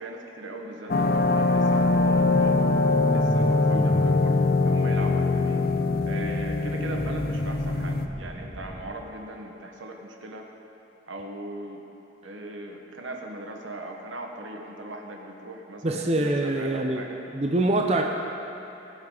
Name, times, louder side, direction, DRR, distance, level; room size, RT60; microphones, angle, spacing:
voice 1, 0.0-2.6 3.1-4.3 4.6-5.6 6.0-10.5 11.1-11.8 12.2-17.2, right 1 dB, 80° right, 1 dB, 1.4 m, -39 dB
sound 1, 0.9-8.1, left 3 dB, 50° left, 0.6 m, -23 dB
sound 2, 2.1-8.9, equal, 30° left, 1.9 m, -36 dB
voice 2, 15.8-17.0 17.3-18.0, right 2 dB, 35° right, 1 dB, 0.6 m, -24 dB
22.0 x 7.7 x 3.9 m, 2.9 s
head